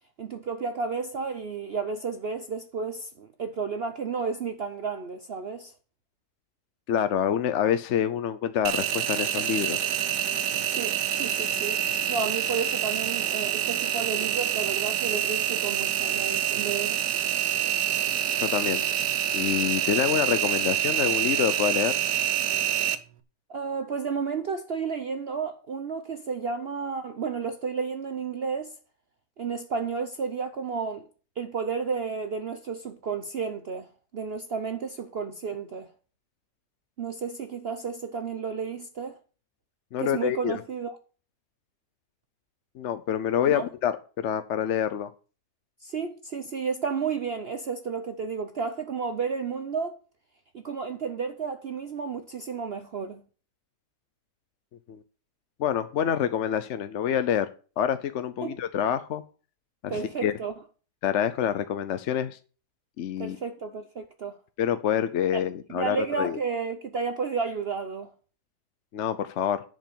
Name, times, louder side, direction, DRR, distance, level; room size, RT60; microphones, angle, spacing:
voice 1, 0.2-5.7 10.7-11.8 12.1-17.0 23.5-28.7 29.4-31.1 31.4-35.9 37.0-39.2 40.0-41.0 43.5-43.6 45.8-50.0 50.5-53.2 58.4-58.6 59.9-60.5 63.2-64.4 65.3-65.4 65.7-68.1, right 5 dB, 50° right, 0.7 m, -32 dB
voice 2, 6.9-9.8 18.3-18.8 19.3-22.0 39.9-40.6 42.8-45.1 54.9-55.0 55.6-57.5 57.8-59.2 59.8-60.3 61.0-62.4 63.0-63.4 64.6-66.4 68.9-69.6, left 9 dB, 60° left, 0.8 m, -27 dB
Engine, 8.6-22.9, right 11 dB, 75° right, 1.3 m, -27 dB
10.5 x 5.2 x 6.7 m
omnidirectional pair, 1.8 m